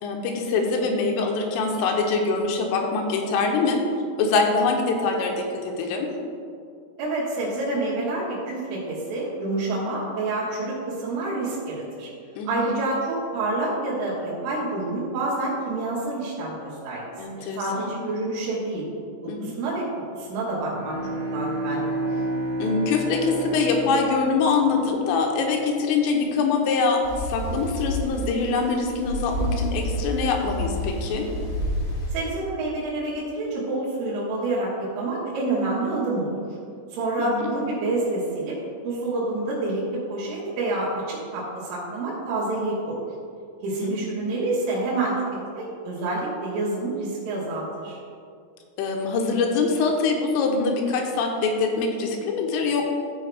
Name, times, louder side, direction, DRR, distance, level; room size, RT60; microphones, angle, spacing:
voice 1, 0.0-3.8 4.2-5.3 5.6-6.1 12.4-12.7 17.2-17.9 19.3-19.5 22.6-31.3 37.2-37.6 43.7-44.0 48.8-52.9, left 4 dB, 90° left, 2 dB, 3.6 m, -24 dB
voice 2, 7.0-12.1 12.5-17.0 17.4-18.9 19.4-19.9 20.1-20.9 21.3-22.0 32.1-36.3 36.9-38.6 38.8-43.1 43.6-48.0, right 2 dB, 85° right, -8 dB, 4.4 m, -28 dB
Bowed string instrument, 20.6-25.4, right 1 dB, 60° right, 2.9 m, -30 dB
sound 1, 27.0-32.1, equal, 50° left, 1.6 m, -29 dB
15.0 x 5.6 x 3.5 m, 2.4 s
omnidirectional pair, 5.6 m